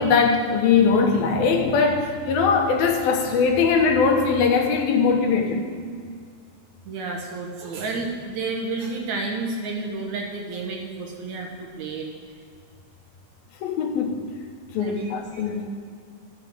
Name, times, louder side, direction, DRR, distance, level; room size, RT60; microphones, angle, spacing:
voice 1, 0.0-5.6 13.6-14.2 14.7-15.6, left 5 dB, 85° left, 3 dB, 3.0 m, -20 dB
voice 2, 6.9-12.1 14.8-15.4, right 3 dB, 65° right, 1 dB, 2.2 m, -31 dB
11.5 x 7.1 x 6.7 m, 2.2 s
omnidirectional pair, 4.1 m